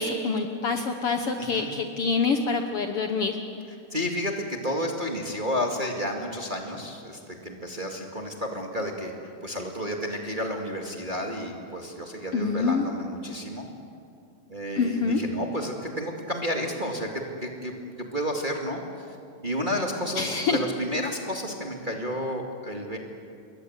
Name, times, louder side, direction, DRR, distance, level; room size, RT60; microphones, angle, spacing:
voice 1, 0.0-3.4 12.3-12.8 14.8-15.2 20.2-20.6, left 4 dB, 60° left, 5 dB, 1.7 m, -26 dB
voice 2, 1.4-1.7 3.9-9.1 9.4-13.7 14.5-17.7 18.1-19.2 19.4-23.0, equal, 20° right, 1 dB, 1.8 m, -31 dB
28.0 x 22.0 x 8.1 m, 2.4 s
omnidirectional pair, 3.6 m